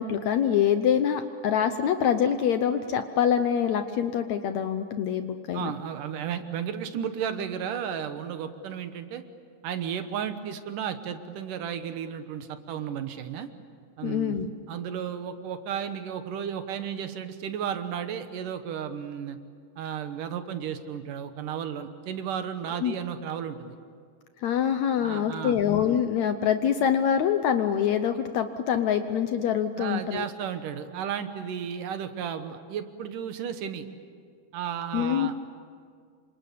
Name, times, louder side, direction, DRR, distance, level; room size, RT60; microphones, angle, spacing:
voice 1, 0.0-5.7 14.0-14.5 22.8-22.9 24.4-30.3 34.9-35.3, left 8 dB, 70° left, 9 dB, 1.8 m, -25 dB
voice 2, 5.5-9.2 9.6-13.5 14.0-19.4 19.8-23.8 25.0-25.6 29.8-33.9 34.5-35.3, right 8 dB, 70° right, 9 dB, 2.7 m, -33 dB
27.5 x 25.5 x 8.5 m, 2.1 s
omnidirectional pair, 4.0 m